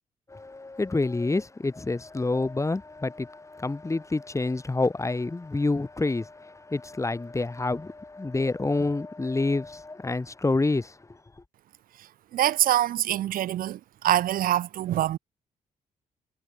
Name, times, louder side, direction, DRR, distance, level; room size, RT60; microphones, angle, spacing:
voice 1, 0.3-10.9, left 3 dB, 20° left, 3.4 m, -28 dB
voice 2, 12.0-15.2, right 12 dB, 80° right, 1.3 m, -25 dB
cardioid pair, 80°, 14 cm